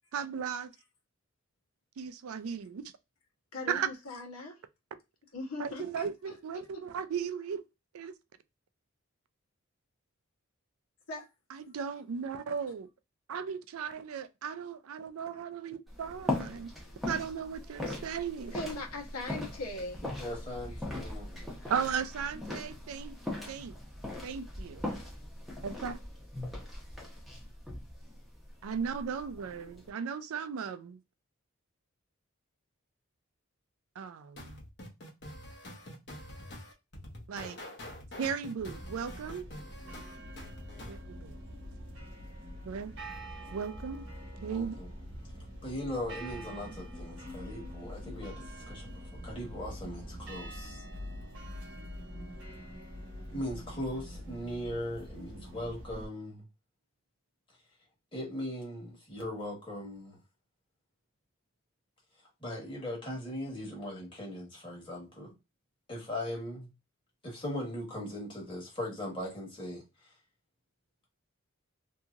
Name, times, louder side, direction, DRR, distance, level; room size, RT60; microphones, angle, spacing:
voice 1, 0.1-0.7 2.0-2.8 3.7-3.9 5.6-7.6 7.9-8.1 11.5-12.9 13.3-16.7 17.1-18.5 21.7-23.2 23.5-23.7 24.2-24.9 25.6-26.0 28.6-31.0 34.0-34.6 37.3-37.6 38.2-39.5 40.9-41.3 42.7-42.9 43.5-44.0 44.4-44.8, right 7 dB, 85° right, 0.4 m, -36 dB
voice 2, 3.5-4.5 5.3-6.8 11.1-11.3 18.5-20.0, left 2 dB, 90° left, 1.0 m, -40 dB
sound 1, 15.9-29.9, left 1 dB, ahead, 0.7 m, -40 dB
voice 3, 20.2-21.5 44.5-44.9 45.6-48.9 49.2-50.8 53.3-56.4 58.1-60.2 62.4-65.3 65.9-66.7 67.2-69.8, left 1 dB, 25° left, 1.3 m, -39 dB
sound 2, 34.4-41.0, left 1 dB, 50° left, 0.9 m, -46 dB
sound 3, 38.6-56.1, equal, 60° right, 1.1 m, -44 dB
2.9 x 2.7 x 2.4 m
head